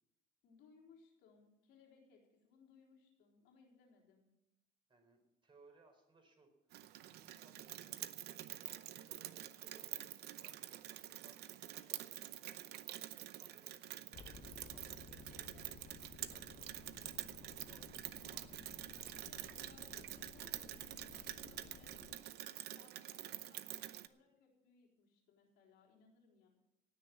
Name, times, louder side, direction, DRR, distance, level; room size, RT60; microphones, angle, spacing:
voice 1, 0.4-4.3 19.1-26.5, left 5 dB, 90° left, 0 dB, 3.9 m, -67 dB
voice 2, 4.9-6.8 7.1-8.1 8.6-12.6 13.4-16.5 16.9-18.6 19.3-19.5, right 3 dB, 30° right, 3 dB, 4.4 m, -68 dB
Rain, 6.7-24.1, right 13 dB, 75° right, 0.7 m, -48 dB
sound 1, 14.1-22.1, left 5 dB, 50° left, 1.3 m, -57 dB
18.0 x 6.7 x 7.5 m, 0.89 s
cardioid pair, 110°, 17 cm